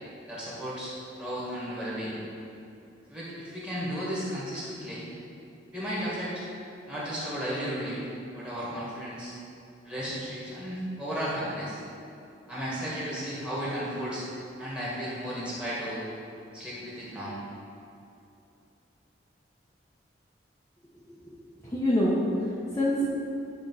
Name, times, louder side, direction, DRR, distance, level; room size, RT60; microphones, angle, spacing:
voice 1, 0.3-2.2 3.1-5.0 5.7-6.4 6.9-8.0 8.3-9.3 9.8-11.8 12.5-14.2 14.6-16.0 16.5-17.4, equal, 5° right, -8 dB, 1.9 m, -34 dB
voice 2, 21.1-23.1, left 1 dB, 15° left, -8 dB, 0.9 m, -27 dB
9.9 x 3.6 x 5.5 m, 2.7 s
head